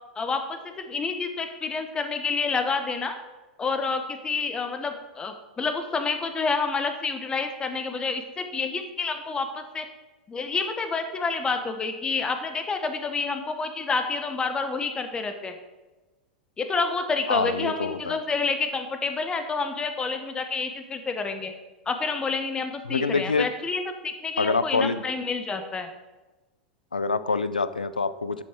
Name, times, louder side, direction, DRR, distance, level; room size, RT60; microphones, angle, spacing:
voice 1, 0.2-3.2 3.6-9.9 10.3-15.5 16.6-21.5 21.9-25.9, left 4 dB, 20° left, 8 dB, 1.0 m, -29 dB
voice 2, 17.3-18.2 22.9-23.5 24.4-25.1 26.9-28.4, left 4 dB, 85° left, 15 dB, 0.5 m, -26 dB
10.5 x 6.3 x 4.6 m, 1.1 s
figure-of-eight pair, 90°, 4 cm